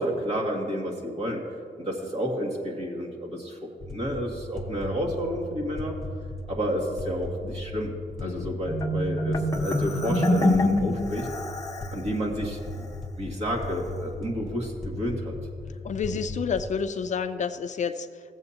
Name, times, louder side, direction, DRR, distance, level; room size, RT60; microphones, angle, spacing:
voice 1, 0.0-6.0 6.5-7.9 8.2-11.3 11.9-12.9 13.2-15.4, equal, 45° right, -1 dB, 2.1 m, -30 dB
sound 1, 3.8-16.8, left 2 dB, ahead, 1.5 m, -37 dB
voice 2, 8.2-8.5 15.8-18.4, left 6 dB, 50° left, 9 dB, 0.4 m, -30 dB
Marimba xylophone, 8.7-12.0, left 1 dB, 20° left, 0.9 m, -25 dB
17.0 x 7.8 x 2.8 m, 2.2 s
cardioid pair, 120°, 16 cm